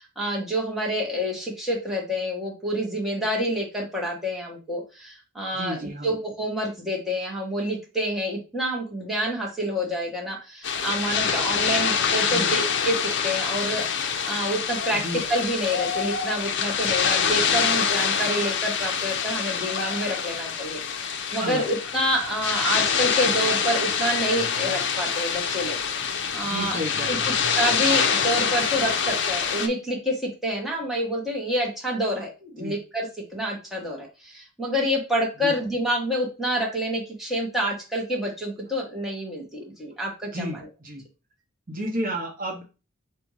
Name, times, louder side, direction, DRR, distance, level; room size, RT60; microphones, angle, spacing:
voice 1, 0.0-5.8 6.0-26.8 27.1-27.2 27.6-40.7, equal, ahead, -3 dB, 1.2 m, -28 dB
voice 2, 5.5-6.1 12.3-12.5 14.9-15.2 21.4-21.6 26.4-27.3 32.6-32.8 35.4-35.5 40.3-41.0 41.7-42.6, equal, 40° right, 0 dB, 0.9 m, -32 dB
sound 1, 10.6-29.7, left 6 dB, 55° left, 0.6 m, -25 dB
4.3 x 2.6 x 4.7 m, 0.31 s
head